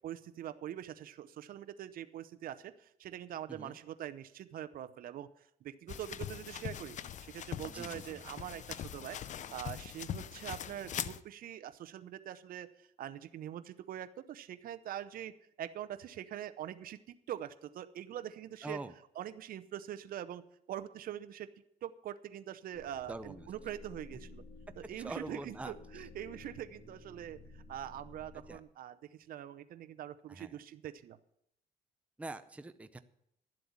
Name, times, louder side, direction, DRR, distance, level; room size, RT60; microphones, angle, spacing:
voice 1, 0.0-5.3 5.6-9.2 9.5-18.8 19.2-20.4 20.7-21.5 21.8-24.4 24.8-31.2, right 11 dB, 60° right, 12 dB, 0.7 m, -44 dB
sound 1, 5.9-11.2, left 9 dB, 45° left, 0.6 m, -42 dB
voice 2, 7.7-8.2 18.6-18.9 23.1-23.5 24.8-25.7 28.5-28.6 30.3-30.6 32.2-33.0, right 2 dB, 10° right, 10 dB, 0.6 m, -44 dB
sound 2, 22.7-28.6, left 2 dB, 15° left, 1.5 m, -54 dB
12.0 x 7.7 x 7.2 m, 0.76 s
cardioid pair, 110°, 17 cm